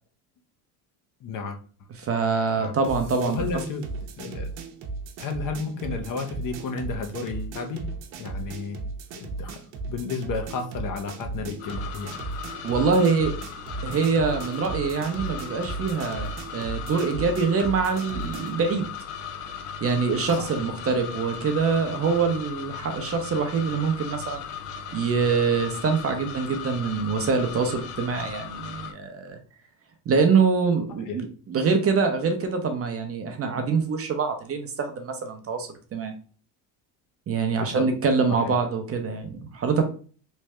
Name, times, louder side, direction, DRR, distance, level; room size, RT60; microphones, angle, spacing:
voice 1, 1.2-1.6 2.6-2.7 3.3-3.8 4.2-4.5 5.2-7.8 8.2-8.8 9.1-12.2 20.4-20.6 31.1-31.2 37.6-37.9 38.3-38.6, left 4 dB, 45° left, 5 dB, 0.7 m, -32 dB
voice 2, 2.0-3.4 12.6-13.4 13.8-18.9 19.8-24.4 24.9-29.4 30.1-36.1 37.3-39.8, right 5 dB, 30° right, 5 dB, 0.6 m, -24 dB
sound 1, 2.8-18.6, right 3 dB, 80° right, 0.8 m, -36 dB
sound 2, 11.6-28.9, left 6 dB, 80° left, 0.7 m, -37 dB
3.2 x 2.6 x 3.2 m, 0.40 s
cardioid pair, 110°, 45 cm